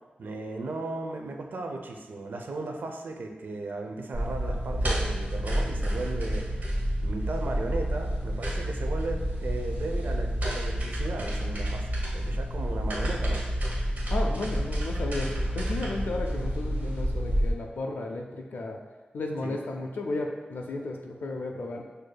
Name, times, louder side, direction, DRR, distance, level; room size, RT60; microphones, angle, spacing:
voice 1, 0.2-6.6 7.0-13.4 19.4-19.6, right 3 dB, 70° right, 3 dB, 0.4 m, -36 dB
sound 1, 4.1-17.5, equal, 55° right, 0.9 m, -29 dB
voice 2, 14.1-18.8 19.1-21.8, left 2 dB, 75° left, 1 dB, 0.4 m, -34 dB
6.3 x 2.6 x 2.2 m, 1.2 s
wide cardioid pair, 125°, 3 cm